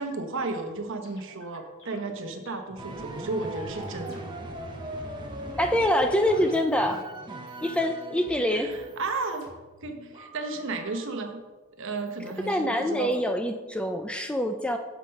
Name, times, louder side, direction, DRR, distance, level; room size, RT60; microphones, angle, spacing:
voice 1, 0.0-4.2 8.5-9.5 9.8-11.4 11.8-13.2, right 3 dB, 60° right, 6 dB, 0.9 m, -33 dB
sound 1, 0.6-7.2 7.5-8.1 8.6-11.3 12.0-13.2, equal, 60° left, 2.6 m, -52 dB
sound 2, 2.8-9.3, right 1 dB, 20° right, 0.9 m, -39 dB
voice 2, 5.6-7.0 7.6-8.7 12.5-14.8, left 1 dB, 5° left, 5 dB, 0.4 m, -25 dB
7.2 x 5.7 x 5.3 m, 1.2 s
head